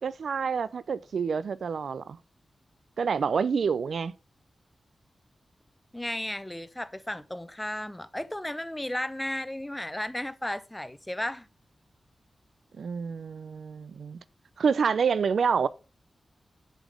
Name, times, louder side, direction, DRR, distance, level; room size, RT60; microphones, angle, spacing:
voice 1, 0.0-2.2 3.0-4.1 12.8-14.2 14.6-15.7, right 6 dB, 90° right, 0.4 m, -27 dB
voice 2, 5.9-11.5, left 1 dB, 10° left, 0.7 m, -34 dB
7.4 x 5.1 x 5.0 m
wide cardioid pair, 110°, 0 cm